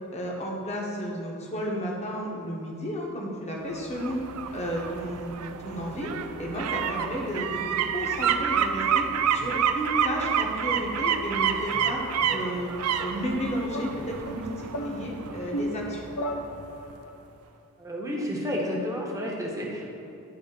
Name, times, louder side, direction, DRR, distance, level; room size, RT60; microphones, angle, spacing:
voice 1, 0.1-4.2 4.5-6.1 6.4-7.6 7.9-9.1 9.3-12.0 12.3-12.7 13.0-16.0, equal, 30° left, -2 dB, 1.3 m, -32 dB
sound 1, 3.7-16.5 16.9-17.0, right 7 dB, 75° right, 0.4 m, -29 dB
sound 2, 13.7-17.2, equal, 75° left, 0.6 m, -35 dB
voice 2, 17.8-20.0, equal, 15° right, -2 dB, 1.2 m, -31 dB
10.5 x 3.6 x 5.1 m, 2.8 s
head